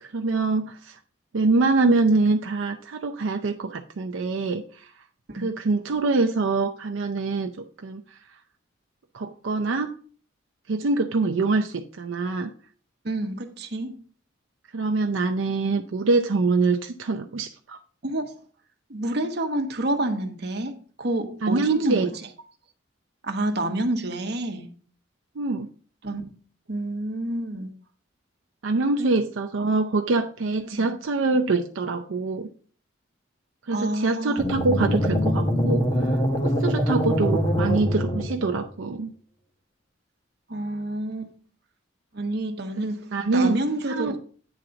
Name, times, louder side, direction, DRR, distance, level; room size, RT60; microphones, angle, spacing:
voice 1, 0.0-1.0 1.3-4.6 5.3-8.0 9.1-10.0 10.7-12.5 14.7-17.8 21.4-22.1 25.4-25.7 28.6-32.5 33.7-39.1 43.1-43.6 43.9-44.2, right 3 dB, 80° right, 0.5 m, -24 dB
voice 2, 13.0-14.0 18.0-18.3 18.9-22.1 23.2-24.7 26.0-26.3 26.7-27.7 29.0-29.1 30.7-30.9 33.7-34.4 40.5-41.3 42.1-44.2, right 1 dB, 55° right, 1.1 m, -28 dB
sound 1, 34.4-38.7, equal, 25° left, 1.5 m, -24 dB
9.0 x 3.9 x 5.7 m
head